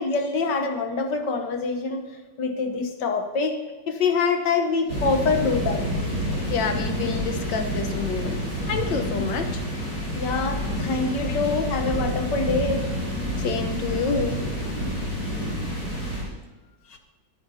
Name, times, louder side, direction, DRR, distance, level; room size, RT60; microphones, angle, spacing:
voice 1, 0.0-2.1 2.4-3.6 3.9-5.8 9.2-9.3 10.1-12.9 16.9-17.0, left 4 dB, 75° left, 5 dB, 1.6 m, -25 dB
sound 1, 4.9-16.2, equal, 50° left, 5.5 m, -28 dB
voice 2, 6.5-8.4 8.7-9.6 11.2-11.4 13.4-14.5, left 5 dB, 90° left, 6 dB, 1.8 m, -28 dB
sound 2, 8.3-9.5, equal, 25° left, 2.1 m, -37 dB
23.5 x 9.4 x 2.8 m, 1.2 s
omnidirectional pair, 1.9 m